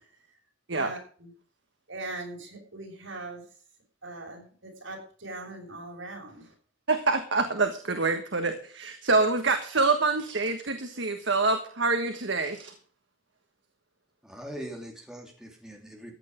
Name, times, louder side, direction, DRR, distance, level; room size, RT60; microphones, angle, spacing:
voice 1, 0.7-1.3 1.9-3.4 4.0-6.5, right 2 dB, 85° right, 6.0 m, -40 dB
voice 2, 6.9-12.7, right 3 dB, 70° right, 1.5 m, -26 dB
voice 3, 14.2-16.1, right 1 dB, 5° right, 2.7 m, -41 dB
15.0 x 9.2 x 5.2 m
head